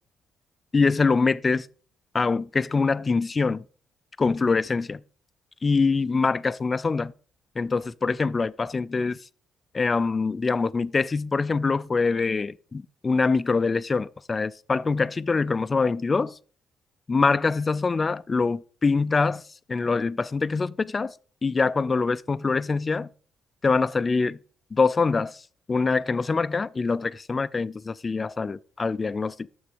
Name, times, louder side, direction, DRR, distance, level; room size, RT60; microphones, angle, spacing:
voice 1, 0.7-1.7 2.1-3.6 4.2-5.0 5.6-7.1 7.6-9.3 9.7-16.4 17.1-19.4 19.7-21.1 21.4-23.1 23.6-24.4 24.7-29.5, left 4 dB, 30° left, 0.4 m, -24 dB
9.6 x 7.1 x 4.9 m
cardioid pair, 90°, 0 cm